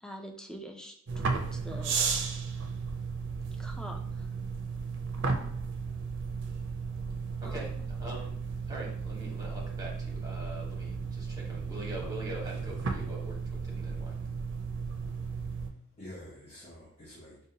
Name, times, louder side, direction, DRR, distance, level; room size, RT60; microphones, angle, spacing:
voice 1, 0.0-2.0 3.6-4.3 7.4-7.9, equal, 5° left, 3 dB, 0.3 m, -45 dB
sound 1, 1.1-15.7, right 5 dB, 60° right, 0.5 m, -34 dB
voice 2, 7.4-7.7 8.0-8.3 8.7-14.2, right 1 dB, 20° right, -3 dB, 1.0 m, -42 dB
voice 3, 15.5-17.4, left 1 dB, 30° left, -6 dB, 0.7 m, -48 dB
5.1 x 2.2 x 2.7 m, 0.64 s
head